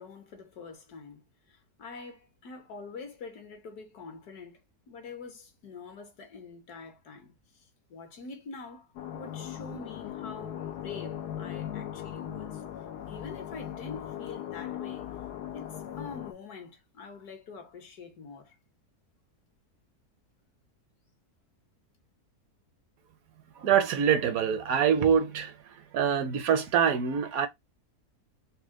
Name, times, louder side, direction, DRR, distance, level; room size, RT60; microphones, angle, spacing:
voice 1, 0.0-4.6 4.9-8.9 9.1-12.6 13.1-15.1 15.5-15.7 16.0-18.5, left 4 dB, 70° left, 1.6 m, -45 dB
sound 1, 9.0-16.3, left 10 dB, 90° left, 1.3 m, -39 dB
voice 2, 23.5-27.5, right 8 dB, 70° right, 0.9 m, -25 dB
4.2 x 2.1 x 3.6 m
omnidirectional pair, 1.7 m